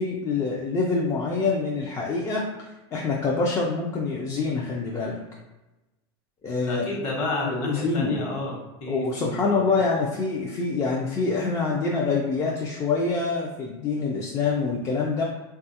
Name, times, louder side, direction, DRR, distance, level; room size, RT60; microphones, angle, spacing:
voice 1, 0.0-5.2 6.4-6.9 7.4-8.2 8.9-15.2, left 4 dB, 25° left, -3 dB, 0.3 m, -26 dB
voice 2, 6.7-9.7, left 2 dB, 45° left, -2 dB, 1.1 m, -31 dB
3.1 x 2.3 x 2.7 m, 1.0 s
supercardioid pair, 125°, 14 cm